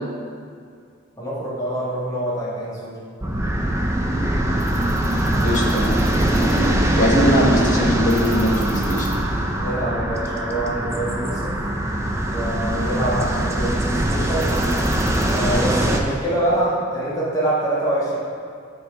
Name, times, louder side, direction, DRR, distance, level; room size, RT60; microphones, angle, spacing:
voice 1, 1.2-2.9 9.6-11.6 12.3-14.6 15.3-18.2, right 1 dB, 20° left, -8 dB, 1.5 m, -25 dB
sound 1, 3.2-16.0, right 1 dB, 15° right, 0.6 m, -22 dB
voice 2, 5.4-9.1, equal, 40° left, -4 dB, 1.5 m, -21 dB
12.0 x 4.7 x 3.3 m, 2.2 s
head